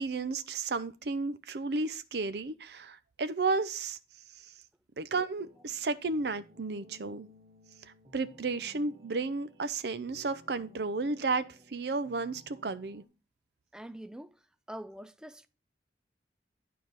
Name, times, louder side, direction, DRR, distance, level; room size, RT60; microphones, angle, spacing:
voice 1, 0.0-4.0 4.4-4.5 5.0-7.3 8.1-13.0, right 3 dB, 70° right, 0.6 m, -33 dB
sound 1, 5.4-13.1, left 1 dB, 35° right, 1.1 m, -58 dB
voice 2, 13.7-14.4 14.7-15.5, right 1 dB, 5° right, 0.3 m, -44 dB
9.4 x 4.7 x 5.3 m
head